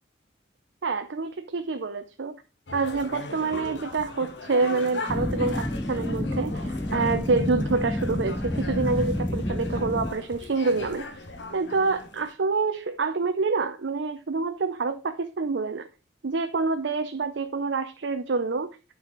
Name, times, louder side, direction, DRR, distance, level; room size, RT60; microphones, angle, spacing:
voice 1, 0.8-2.4 2.7-11.1 11.5-15.9 16.2-18.7, right 4 dB, 75° right, 0.6 m, -27 dB
sound 1, 2.7-12.3, left 2 dB, 80° left, 1.2 m, -39 dB
sound 2, 5.1-10.1, left 1 dB, 15° left, 0.6 m, -29 dB
9.5 x 4.9 x 3.8 m
head